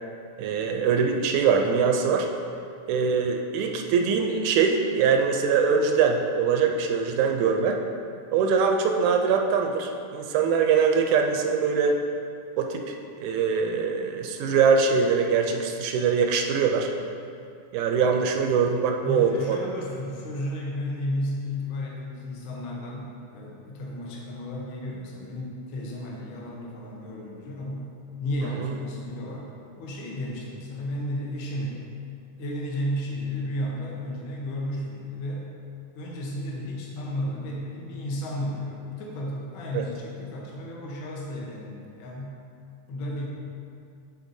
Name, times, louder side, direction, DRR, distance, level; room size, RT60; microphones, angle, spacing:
voice 1, 0.4-2.3 2.9-7.8 8.3-12.0 12.6-12.9 13.2-16.9 17.7-19.6 28.6-28.7 39.7-39.8, right 5 dB, 80° right, 3 dB, 1.8 m, -23 dB
voice 2, 19.0-27.9 28.2-29.5 29.8-31.8 32.4-35.5 35.9-42.3 42.9-43.2, left 1 dB, 85° left, -3 dB, 1.1 m, -33 dB
10.5 x 4.0 x 2.6 m, 2.4 s
omnidirectional pair, 3.6 m